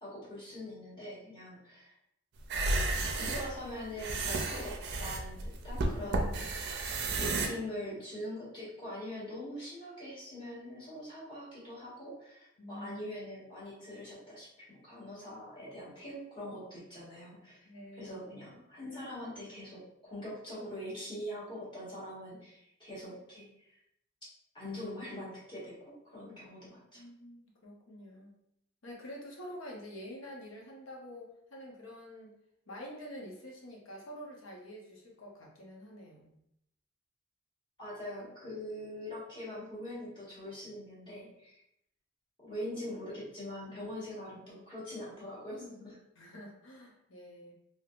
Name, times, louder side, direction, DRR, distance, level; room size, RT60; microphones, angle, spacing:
voice 1, 0.0-1.9 3.1-6.8 7.2-17.7 17.9-23.8 24.5-27.0 37.8-41.6 42.4-46.0, left 1 dB, 25° left, -8 dB, 1.3 m, -43 dB
sound 1, 2.4-7.5, right 2 dB, 55° right, 0.4 m, -32 dB
voice 2, 12.6-13.0 17.6-18.2 26.9-28.3 28.8-32.3 32.7-36.4 46.2-47.5, equal, 85° left, -1 dB, 0.8 m, -47 dB
3.4 x 2.8 x 2.4 m, 0.77 s
head